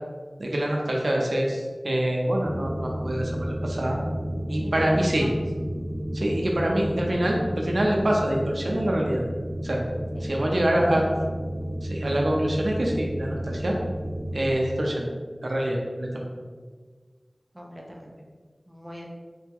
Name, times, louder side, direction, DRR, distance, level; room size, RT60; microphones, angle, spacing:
voice 1, 0.4-4.0 4.5-5.3 6.1-9.2 9.6-9.8 10.2-11.1 11.8-13.8 14.3-15.1 15.4-16.2, right 1 dB, 80° right, -1 dB, 0.7 m, -25 dB
sound 1, 2.4-14.5, equal, 15° left, 0.8 m, -32 dB
voice 2, 4.5-5.4 6.3-6.4 10.1-11.2 17.5-18.2 18.7-19.1, equal, 20° right, -3 dB, 0.9 m, -41 dB
3.5 x 2.9 x 3.6 m, 1.5 s
wide cardioid pair, 45°, 0 cm